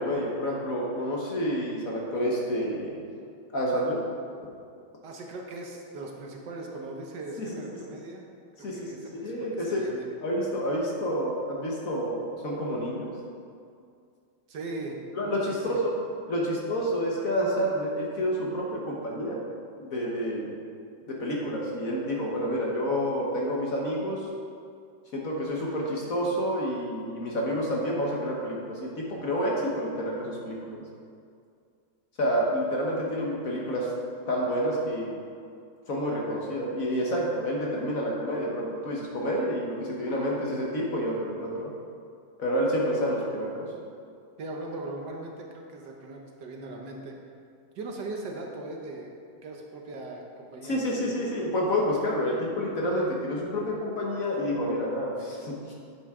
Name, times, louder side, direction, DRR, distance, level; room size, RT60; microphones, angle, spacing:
voice 1, 0.0-3.0 3.5-4.0 7.4-7.5 8.6-9.8 10.2-13.1 15.1-15.9 16.3-19.5 19.8-20.5 21.1-24.3 25.1-30.8 32.2-33.9 34.2-35.1 35.9-41.7 42.4-43.7 50.6-55.7, equal, 50° left, -3 dB, 1.4 m, -29 dB
voice 2, 5.0-8.3 8.6-10.0 14.5-15.0 15.2-15.8 44.4-47.1 47.7-49.1 49.4-51.1, right 2 dB, 65° right, 1 dB, 1.4 m, -39 dB
9.4 x 7.3 x 3.6 m, 2.4 s
omnidirectional pair, 2.2 m